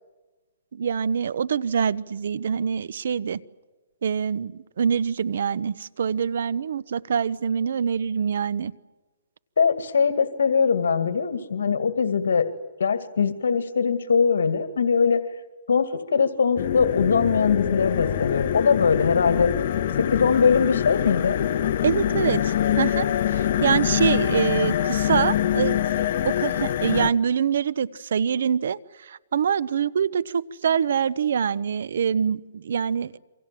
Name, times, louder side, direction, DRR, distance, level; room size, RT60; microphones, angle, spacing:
voice 1, 0.7-3.4 4.0-8.7 21.8-25.8 26.2-33.2, right 7 dB, 70° right, 19 dB, 0.9 m, -25 dB
voice 2, 9.6-12.5 12.8-15.2 15.7-19.5 20.0-21.4, left 6 dB, 85° left, 9 dB, 2.1 m, -21 dB
sound 1, 16.6-27.1, left 10 dB, 50° left, 1.2 m, -24 dB
28.0 x 25.5 x 7.6 m, 1.2 s
hypercardioid pair, 160°, 0 cm